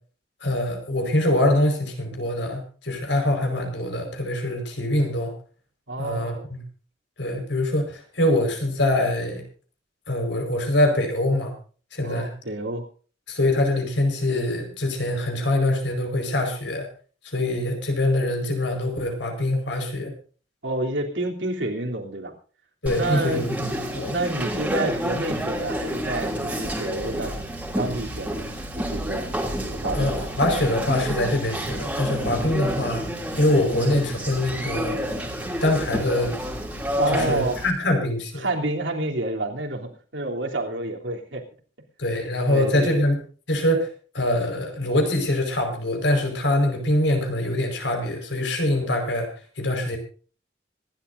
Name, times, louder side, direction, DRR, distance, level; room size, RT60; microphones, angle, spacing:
voice 1, 0.4-5.3 6.0-6.6 7.2-9.4 10.1-11.5 11.9-12.3 13.3-16.9 17.2-20.1 22.8-24.1 29.9-33.0 33.4-35.0 35.6-36.4 37.1-38.5 42.0-43.2 43.5-43.9 44.1-49.3 49.6-50.0, left 1 dB, 70° left, 4 dB, 5.0 m, -24 dB
voice 2, 5.9-6.5 12.0-12.9 20.6-22.3 22.9-23.6 24.1-27.4 27.8-28.4 28.8-29.3 29.7-30.3 37.0-37.6 38.4-41.4 42.5-43.0, right 2 dB, 75° right, 1 dB, 3.3 m, -29 dB
Conversation, 22.9-37.7, equal, 10° right, 2.8 m, -29 dB
25.5 x 12.0 x 2.7 m, 0.39 s
head